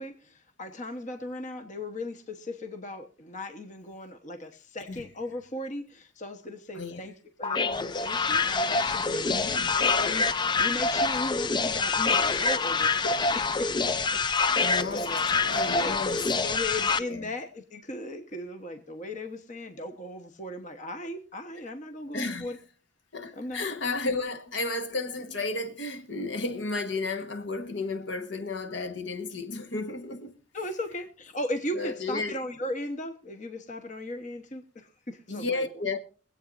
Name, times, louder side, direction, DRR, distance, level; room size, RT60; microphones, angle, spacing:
voice 1, 0.0-7.1 7.4-15.2 15.7-22.6 23.3-23.7 30.5-35.7, left 1 dB, 35° left, 1.0 m, -37 dB
voice 2, 6.7-7.1 9.0-9.7 14.6-16.3 17.0-17.3 22.1-22.5 23.1-30.4 31.7-32.4 35.3-36.0, left 3 dB, 60° left, 1.3 m, -33 dB
sound 1, 7.4-17.0, left 4 dB, 20° left, 0.4 m, -26 dB
23.5 x 8.3 x 2.5 m
head